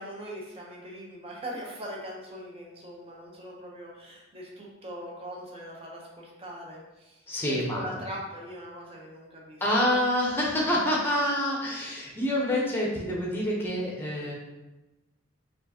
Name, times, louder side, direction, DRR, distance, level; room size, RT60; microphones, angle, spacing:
voice 1, 0.0-9.6, equal, 30° right, -3 dB, 0.8 m, -41 dB
voice 2, 7.3-7.9 9.6-14.3, left 1 dB, 10° left, -3 dB, 0.8 m, -27 dB
4.3 x 2.5 x 2.8 m, 1.1 s
head